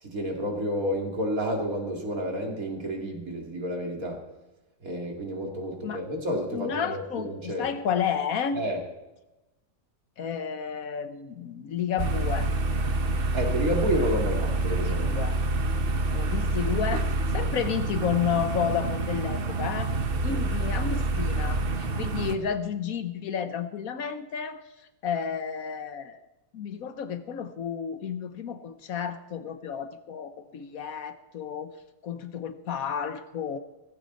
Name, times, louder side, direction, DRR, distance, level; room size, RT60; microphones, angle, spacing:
voice 1, 0.0-4.2 4.8-7.7 8.5-8.8 13.3-15.1 20.3-20.5, equal, 80° right, 1 dB, 3.2 m, -30 dB
voice 2, 6.5-8.6 10.2-12.5 14.2-14.3 14.9-15.4 16.1-19.9 20.2-24.6 25.0-26.2 26.5-31.7 32.0-33.6, left 7 dB, 80° left, 10 dB, 1.5 m, -31 dB
sound 1, 12.0-22.4, right 2 dB, 45° right, 1.1 m, -27 dB
17.0 x 15.0 x 4.1 m, 1.0 s
omnidirectional pair, 1.5 m